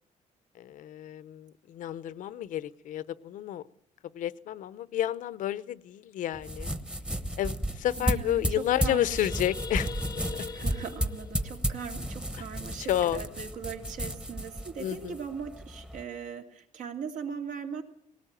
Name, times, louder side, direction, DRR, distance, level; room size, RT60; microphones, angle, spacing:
voice 1, 0.5-3.6 4.1-6.7 7.4-10.2 12.4-12.5 12.9-13.2 14.8-15.2, left 12 dB, 75° left, 17 dB, 0.8 m, -31 dB
sound 1, 6.3-16.0, equal, 5° right, 1.1 m, -33 dB
voice 2, 8.0-9.3 10.4-17.8, right 6 dB, 70° right, 4 dB, 2.9 m, -39 dB
sound 2, 8.5-12.7, left 5 dB, 30° left, 0.8 m, -44 dB
19.0 x 18.0 x 9.1 m, 0.68 s
cardioid pair, 145°, 14 cm